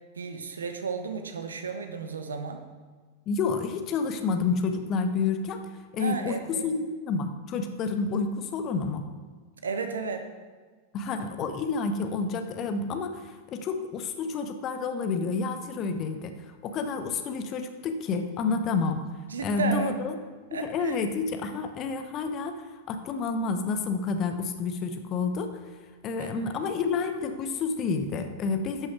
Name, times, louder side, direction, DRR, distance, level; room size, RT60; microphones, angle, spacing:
voice 1, 0.1-2.6 6.0-6.8 9.6-10.3 19.3-20.0 20.5-21.0 26.2-26.3, right 5 dB, 70° right, 7 dB, 1.0 m, -33 dB
voice 2, 3.3-5.7 5.9-9.1 10.9-16.3 16.6-19.1 19.4-20.2 20.5-25.6 26.0-28.9, left 4 dB, 35° left, 8 dB, 0.9 m, -29 dB
10.5 x 6.4 x 6.0 m, 1.4 s
figure-of-eight pair, 90°, 0 cm